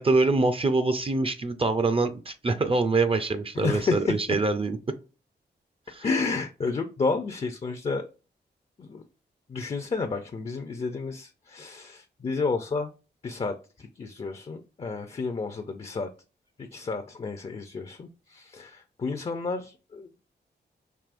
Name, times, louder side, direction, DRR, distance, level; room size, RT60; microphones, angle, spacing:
voice 1, 0.0-4.8 5.9-6.1, right 3 dB, 30° right, 0.4 m, -24 dB
voice 2, 3.6-4.1 6.0-8.1 8.8-9.0 9.5-12.9 13.2-16.1 16.7-20.1, left 4 dB, 35° left, 0.4 m, -31 dB
4.7 x 3.0 x 2.5 m
cardioid pair, 85°, 18 cm